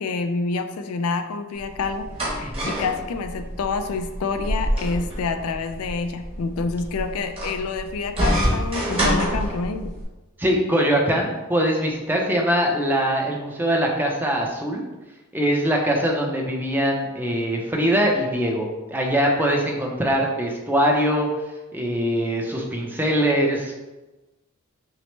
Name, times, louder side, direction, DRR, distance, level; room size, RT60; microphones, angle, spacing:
voice 1, 0.0-9.9, left 4 dB, 80° left, 8 dB, 0.4 m, -28 dB
sound 1, 1.6-10.0, equal, 25° right, 1.2 m, -27 dB
voice 2, 10.4-14.8 15.3-21.3 21.7-23.7, equal, 10° right, 0 dB, 0.5 m, -22 dB
5.9 x 2.1 x 3.2 m, 1.1 s
head